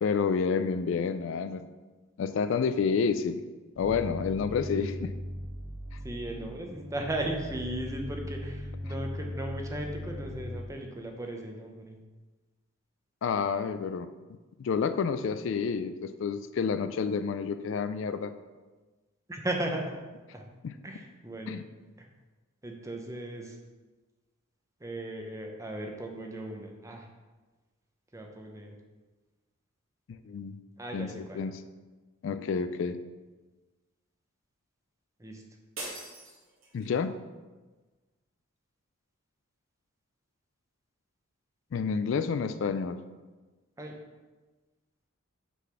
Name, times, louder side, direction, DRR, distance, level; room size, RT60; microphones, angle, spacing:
voice 1, 0.0-1.6 2.2-3.4 3.8-5.1 13.2-14.1 14.6-18.3 20.6-20.7 21.5-21.6 30.3-30.6 30.9-31.5 32.2-33.0 36.7-37.1 41.7-43.0, left 5 dB, 60° left, 11 dB, 0.3 m, -29 dB
sound 1, 3.8-10.6, left 1 dB, 35° right, 1.7 m, -39 dB
voice 2, 6.0-12.0 19.3-20.0 20.3-20.4 20.8-21.6 22.6-23.6 24.8-27.1 28.1-28.7 30.8-31.4 35.2-35.4 43.8-43.9, right 1 dB, 15° right, 2 dB, 0.7 m, -36 dB
sound 2, 35.8-37.0, right 2 dB, 80° right, 2.1 m, -42 dB
5.9 x 4.0 x 5.7 m, 1.3 s
head